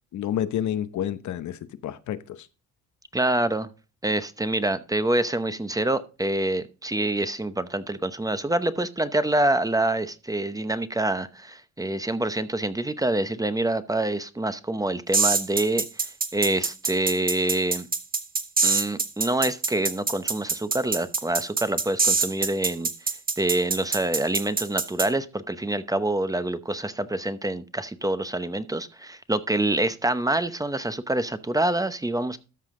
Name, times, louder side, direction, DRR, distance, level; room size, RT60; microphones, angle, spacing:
voice 1, 0.1-2.5, left 10 dB, 70° left, 0.8 m, -29 dB
voice 2, 3.1-3.7 4.0-17.9 18.6-22.9 23.4-32.4, right 1 dB, 10° right, 0.8 m, -26 dB
sound 1, 15.1-25.1, right 4 dB, 30° right, 1.6 m, -24 dB
13.0 x 5.7 x 3.7 m
cardioid pair, 90°, 30 cm